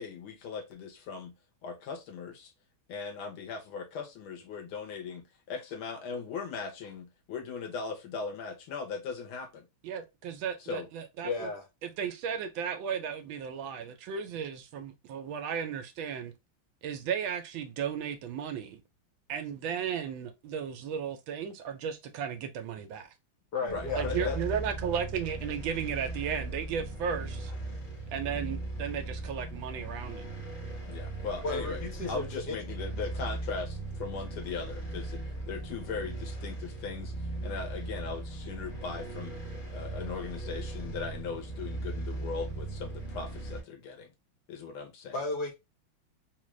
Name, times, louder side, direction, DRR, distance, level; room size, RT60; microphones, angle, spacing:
voice 1, 0.0-1.3 1.6-2.5 2.9-9.7 10.6-10.9 23.6-24.4 30.9-31.8 32.1-39.4 39.7-44.1 44.5-45.1, left 5 dB, 85° left, 1.8 m, -39 dB
voice 2, 9.8-11.5 11.8-16.3 16.8-18.8 19.3-23.1 23.9-27.5 28.1-30.3, right 7 dB, 75° right, 1.3 m, -35 dB
voice 3, 11.2-11.7 23.5-24.4 31.4-32.6 45.1-45.5, left 3 dB, 60° left, 1.4 m, -34 dB
sound 1, 23.7-43.6, right 2 dB, 40° left, 1.4 m, -38 dB
3.8 x 2.5 x 3.1 m
omnidirectional pair, 2.2 m